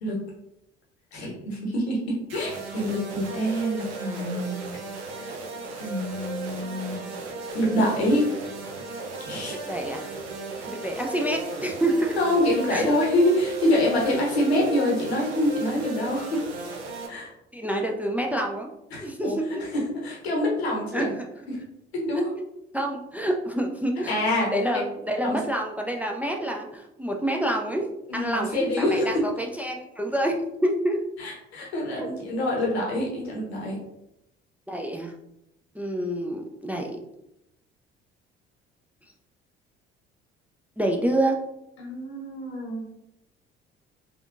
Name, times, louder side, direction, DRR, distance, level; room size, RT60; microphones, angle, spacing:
voice 1, 1.1-4.6 5.1-5.3 5.8-7.0 7.5-8.3 9.3-9.6 12.2-16.4 17.1-17.3 18.9-19.3 19.6-21.1 21.5-21.6 21.9-22.3 24.1-24.8 25.2-25.4 28.1-29.2 31.2-33.8 41.8-42.8, left 1 dB, 85° left, -2 dB, 0.8 m, -26 dB
sound 1, 2.3-17.1, right 3 dB, 75° right, 0.6 m, -36 dB
voice 2, 9.6-10.1 10.7-12.2 12.7-13.0 17.5-18.7 19.0-19.5 20.9-21.1 22.4-22.5 22.7-24.2 24.5-31.0 32.0-32.1 34.7-35.1 35.8-36.9 40.8-41.4, right 1 dB, 5° right, 2 dB, 0.3 m, -27 dB
3.5 x 2.3 x 2.5 m, 0.84 s
figure-of-eight pair, 50°, 31 cm